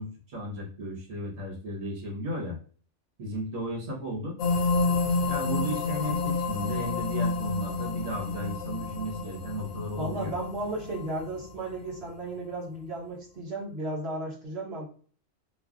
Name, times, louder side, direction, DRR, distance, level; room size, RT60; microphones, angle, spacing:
voice 1, 0.0-2.6 3.2-4.3 5.3-10.3, equal, 75° right, -2 dB, 1.4 m, -35 dB
sound 1, 4.4-12.1, left 3 dB, 90° left, 1.0 m, -29 dB
voice 2, 10.0-14.8, right 2 dB, 50° right, -4 dB, 1.3 m, -34 dB
3.1 x 2.3 x 2.4 m, 0.43 s
omnidirectional pair, 1.4 m